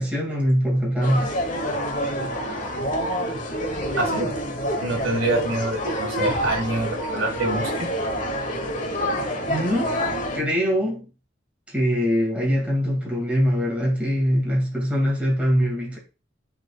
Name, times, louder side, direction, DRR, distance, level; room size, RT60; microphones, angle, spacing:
voice 1, 0.0-1.4 9.5-9.9 10.3-11.1 11.7-16.0, equal, 5° right, -3 dB, 2.4 m, -22 dB
sound 1, 1.0-10.4, equal, 40° left, 1.2 m, -27 dB
voice 2, 4.0-4.3 4.8-7.7, right 2 dB, 70° right, 1 dB, 1.9 m, -25 dB
10.5 x 4.3 x 2.4 m, 0.31 s
head